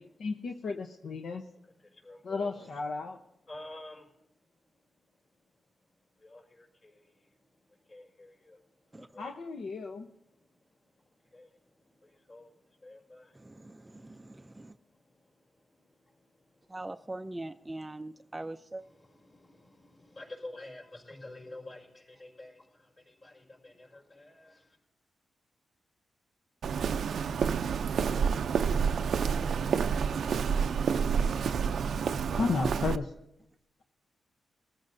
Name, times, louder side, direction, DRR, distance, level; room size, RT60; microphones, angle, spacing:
voice 1, 0.0-1.4 2.2-3.2 9.2-10.1 31.9-32.0 32.4-33.1, left 4 dB, 70° left, 0.8 m, -33 dB
voice 2, 1.6-2.7 3.4-4.2 4.5-5.6 5.9-9.3 10.2-16.9 17.4-17.5 18.2-18.4 18.8-24.8, left 2 dB, 40° left, 5.3 m, -52 dB
voice 3, 13.3-14.8 16.7-18.8, right 2 dB, 15° right, 0.4 m, -42 dB
Walk footsteps, 26.6-33.0, right 6 dB, 70° right, 0.4 m, -28 dB
23.0 x 14.5 x 2.7 m
cardioid pair, 110°, 0 cm